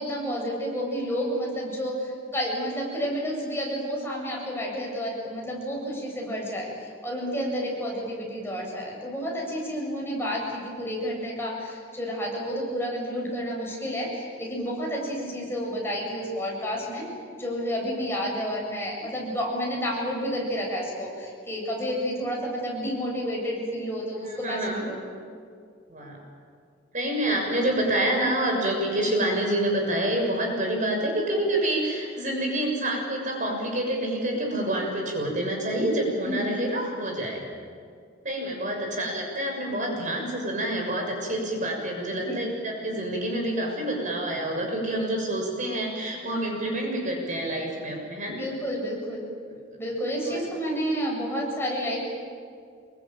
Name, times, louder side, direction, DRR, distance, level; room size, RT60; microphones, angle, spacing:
voice 1, 0.0-17.1 17.4-25.0 36.2-36.7 42.3-42.5 48.3-49.2 49.8-52.0, equal, 15° left, -2 dB, 7.8 m, -30 dB
voice 2, 24.3-24.8 25.9-26.2 26.9-37.5 38.2-48.4 50.3-50.4, right 1 dB, 45° right, 1 dB, 6.7 m, -27 dB
28.0 x 23.5 x 9.1 m, 2.2 s
head